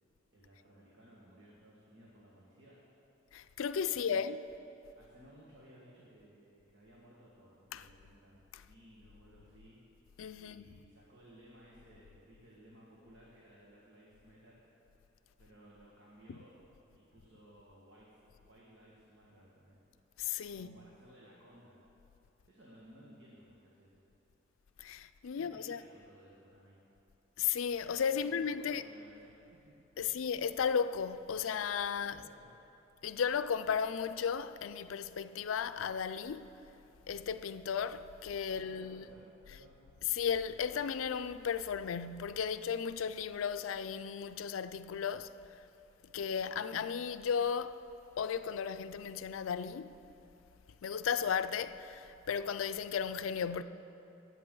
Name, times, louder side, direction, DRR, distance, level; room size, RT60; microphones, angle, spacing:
voice 1, 0.3-2.8 3.9-4.2 5.0-9.8 10.4-14.6 15.4-16.6 16.9-19.8 20.5-21.8 22.5-24.0 25.3-26.8 28.2-30.2 32.0-32.6 38.5-39.8, right 1 dB, 70° right, 1.8 m, -59 dB
voice 2, 3.3-4.4 7.7-7.8 10.2-10.7 16.3-16.4 20.2-20.7 24.8-25.8 27.4-28.8 30.0-32.1 33.0-36.5 37.1-39.0 40.1-45.3 46.1-47.8 48.2-50.0 50.8-53.6, left 7 dB, 90° left, 0.4 m, -35 dB
20.0 x 8.2 x 3.9 m
head